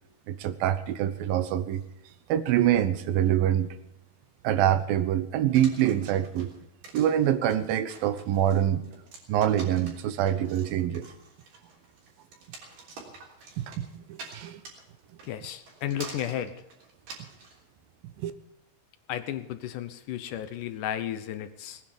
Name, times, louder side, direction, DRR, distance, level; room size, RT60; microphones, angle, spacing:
voice 1, 0.3-1.8 2.3-3.8 4.4-6.5 6.9-8.8 9.3-11.1 13.6-14.6 18.2-18.3, right 11 dB, 75° right, 13 dB, 2.6 m, -25 dB
sound 1, 5.6-17.6, right 3 dB, 60° right, 4.9 m, -46 dB
voice 2, 15.3-16.5 19.1-21.8, left 11 dB, 70° left, 11 dB, 2.1 m, -33 dB
19.5 x 9.9 x 7.1 m, 0.86 s
omnidirectional pair, 4.3 m